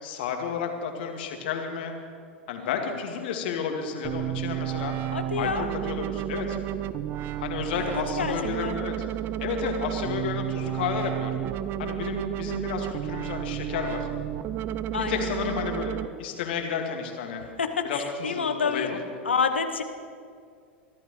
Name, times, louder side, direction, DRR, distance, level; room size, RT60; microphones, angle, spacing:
voice 1, 0.0-1.9 2.5-5.0 5.4-6.6 7.4-8.9 9.4-11.4 11.8-14.1 15.0-17.4 17.8-19.0, left 6 dB, 60° left, 3 dB, 2.1 m, -31 dB
voice 2, 2.6-2.9 5.1-5.7 7.8-8.3 8.6-8.8 14.9-15.3 17.4-18.9 19.2-19.8, left 5 dB, 75° left, 7 dB, 1.0 m, -29 dB
sound 1, 4.0-16.1, right 12 dB, 35° right, 0.6 m, -31 dB
23.5 x 14.5 x 3.2 m, 2.2 s
figure-of-eight pair, 85°, 6 cm